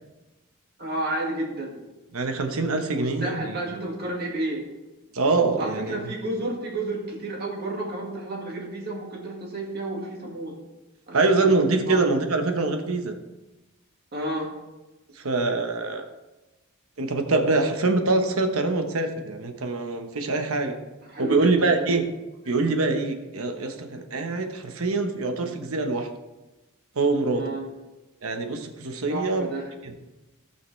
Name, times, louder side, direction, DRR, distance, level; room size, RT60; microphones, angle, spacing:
voice 1, 0.8-1.8 2.9-4.6 5.6-10.5 11.1-11.6 11.9-12.0 14.1-14.5 21.1-21.9 27.3-27.7 29.1-29.7, right 1 dB, 45° right, -1 dB, 1.9 m, -31 dB
voice 2, 2.1-3.6 5.1-6.0 11.1-13.1 15.2-16.0 17.0-20.8 21.2-22.0 22.5-26.1 27.0-27.4 28.2-29.5, right 3 dB, 75° right, 5 dB, 1.0 m, -24 dB
16.5 x 5.7 x 3.2 m, 1.1 s
head